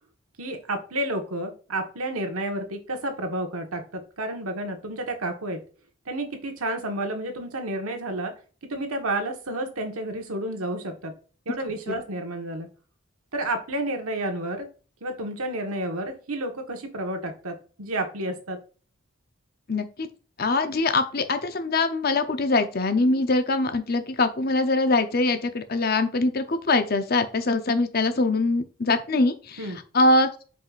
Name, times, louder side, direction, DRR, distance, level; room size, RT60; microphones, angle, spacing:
voice 1, 0.4-5.6 6.1-8.3 8.7-11.1 11.4-12.7 13.3-14.7 15.0-18.6 29.6-29.8, right 1 dB, 90° right, 4 dB, 1.5 m, -30 dB
voice 2, 19.7-20.1 20.4-29.6 29.9-30.3, left 2 dB, 45° left, 8 dB, 0.7 m, -23 dB
7.6 x 5.5 x 2.5 m, 0.36 s
head